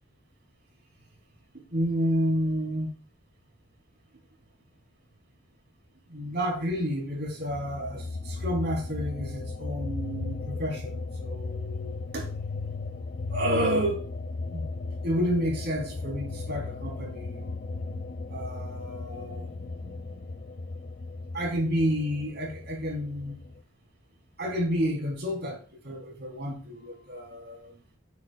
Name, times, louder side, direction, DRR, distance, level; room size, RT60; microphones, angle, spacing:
voice 1, 1.7-2.9 6.1-12.7 13.3-14.1 14.5-14.7 15.0-17.4 18.3-20.2 21.3-23.4 24.4-27.7, equal, 55° right, -1 dB, 3.6 m, -30 dB
sound 1, 7.5-23.6, left 3 dB, 40° left, 0.5 m, -36 dB
9.4 x 8.2 x 2.4 m, 0.41 s
head